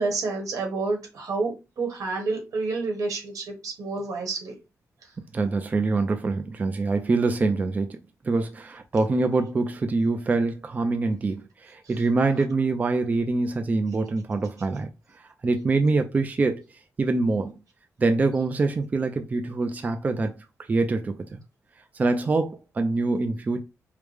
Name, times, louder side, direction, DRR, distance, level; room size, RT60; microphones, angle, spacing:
voice 1, 0.0-1.5 1.8-4.5, right 3 dB, 85° right, 1.5 m, -29 dB
voice 2, 5.3-8.0 8.2-14.9 15.4-16.6 17.0-17.5 18.0-20.3 20.7-21.4 21.9-23.6, right 3 dB, 30° right, 0.3 m, -24 dB
4.7 x 2.1 x 3.3 m
wide cardioid pair, 175°, 6 cm